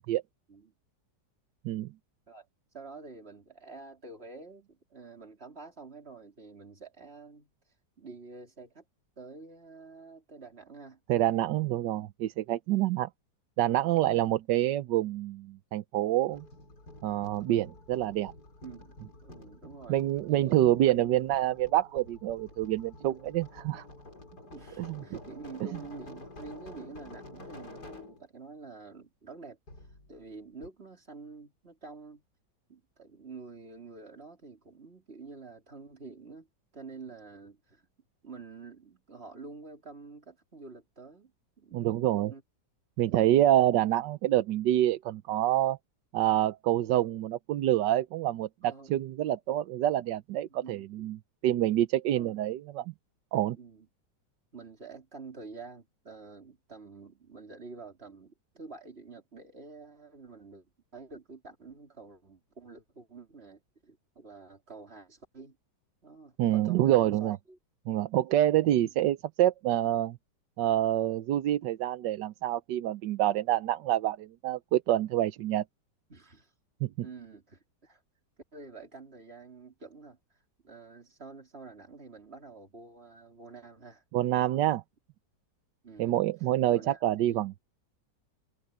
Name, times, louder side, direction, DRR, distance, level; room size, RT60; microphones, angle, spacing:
voice 1, 2.7-7.5 8.0-8.9 9.2-11.0 14.1-14.2 18.6-19.0 19.2-20.5 24.5-29.6 30.1-32.2 32.7-36.5 36.7-37.8 38.2-41.9 42.3-42.4 48.6-49.0 50.5-51.1 52.1-52.4 53.6-53.9 54.5-60.7 60.9-65.6 66.0-67.6 68.6-68.9 76.1-76.5 77.0-78.0 78.5-80.2 80.6-84.0 85.8-86.2 86.7-87.0 87.3-87.4, right 4 dB, 35° right, 3.8 m, -48 dB
voice 2, 11.1-13.1 13.6-16.5 17.0-18.3 19.9-23.8 24.8-25.0 41.7-42.3 43.0-45.8 46.1-52.9 53.3-53.6 66.4-67.4 67.9-70.2 70.6-75.6 76.8-77.1 84.1-84.8 86.0-87.6, right 13 dB, 85° right, 1.4 m, -27 dB
sound 1, 16.3-28.3 29.7-30.4 30.6-30.7, left 2 dB, 65° left, 6.1 m, -49 dB
omnidirectional pair, 1.9 m